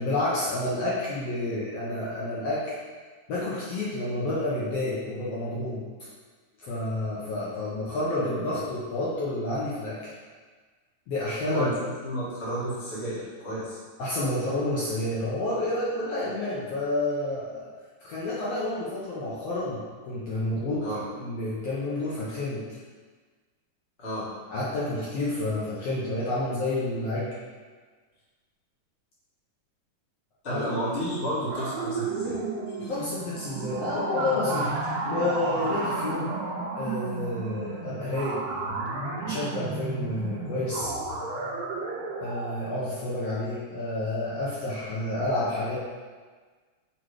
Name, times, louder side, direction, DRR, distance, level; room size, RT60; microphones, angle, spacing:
voice 1, 0.0-2.7 3.3-5.8 6.6-10.1 11.1-11.7 14.0-17.7 18.0-22.6 24.5-27.3 30.5-30.6 32.9-34.7 35.1-36.3 36.7-38.4 39.2-40.9 42.2-45.8, left 2 dB, 65° left, -8 dB, 1.8 m, -29 dB
voice 2, 11.5-13.8 20.8-21.0 24.0-24.3 30.4-32.4 32.7-32.9, equal, 30° left, -9 dB, 1.4 m, -32 dB
sound 1, 31.5-42.5, right 3 dB, 70° right, 1.8 m, -32 dB
6.2 x 3.2 x 4.8 m, 1.4 s
omnidirectional pair, 3.4 m